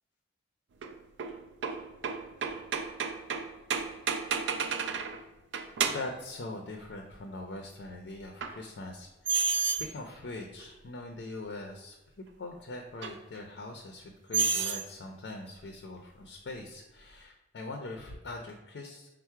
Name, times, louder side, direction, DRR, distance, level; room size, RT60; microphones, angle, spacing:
sound 1, 0.8-5.2 5.5-6.2 8.4-8.6 9.3-9.9 10.6-10.7 13.0-13.2 14.3-14.9, right 6 dB, 85° right, 0.4 m, -31 dB
voice 1, 5.8-19.1, left 2 dB, 70° left, 3 dB, 0.5 m, -42 dB
4.5 x 2.0 x 4.4 m, 0.99 s
head